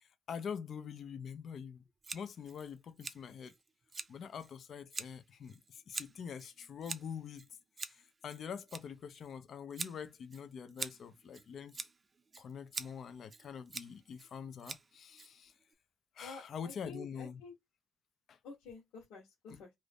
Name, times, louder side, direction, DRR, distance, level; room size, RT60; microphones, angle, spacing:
voice 1, 0.0-1.8 2.1-3.5 4.1-7.5 7.8-11.8 12.4-15.5 16.2-17.4 18.3-18.4, left 7 dB, 60° left, 0.6 m, -45 dB
Scissors, 2.0-15.7, right 4 dB, 30° right, 0.5 m, -47 dB
voice 2, 16.2-17.5 18.4-19.7, left 4 dB, 90° left, 1.1 m, -50 dB
2.6 x 2.6 x 3.4 m
cardioid pair, 90°, 0 cm